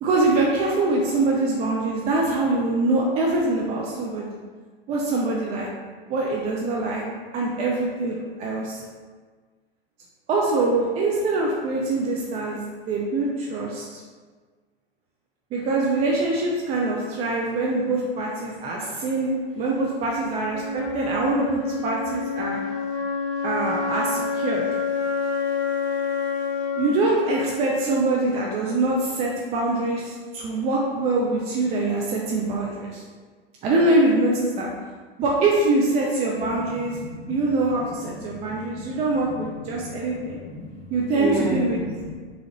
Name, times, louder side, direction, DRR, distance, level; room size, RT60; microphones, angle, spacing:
voice 1, 0.0-4.3 4.9-5.7 6.1-7.0 7.3-8.8 10.3-12.6 12.9-14.0 15.5-22.6 23.4-24.6 26.8-33.0 33.6-34.7 35.2-37.0 37.3-40.4 40.9-41.8, right 2 dB, 20° right, -2 dB, 0.3 m, -24 dB
Wind instrument woodwind instrument, 20.4-28.4, left 5 dB, 60° left, 0.7 m, -28 dB
voice 2, 36.7-37.4 38.3-38.4 38.9-39.0 39.5-40.8 41.1-42.2, right 1 dB, 45° right, -5 dB, 1.3 m, -32 dB
3.6 x 2.7 x 3.0 m, 1.5 s
figure-of-eight pair, 95°, 31 cm